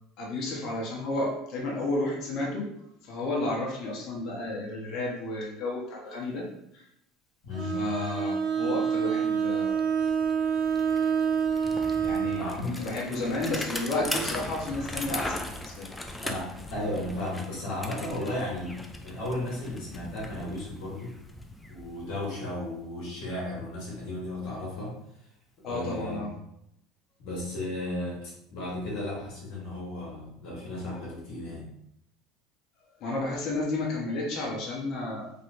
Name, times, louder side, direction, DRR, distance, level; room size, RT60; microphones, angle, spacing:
voice 1, 0.2-2.7 3.0-6.4 6.7-6.8 7.7-9.7 12.0-15.9 25.6-26.3 33.0-35.3, left 2 dB, 50° left, -3 dB, 0.8 m, -32 dB
voice 2, 7.4-7.8 12.3-12.7 16.2-18.7 19.0-21.1 21.7-24.9 25.7-26.3 27.2-31.6, left 1 dB, 70° left, -5 dB, 1.4 m, -34 dB
Bowed string instrument, 7.5-12.5, right 7 dB, 30° right, 0.9 m, -27 dB
Bicycle, 9.3-9.4 9.7-22.6, left 1 dB, 10° left, 0.4 m, -39 dB
2.9 x 2.9 x 2.6 m, 0.77 s
supercardioid pair, 110°, 0 cm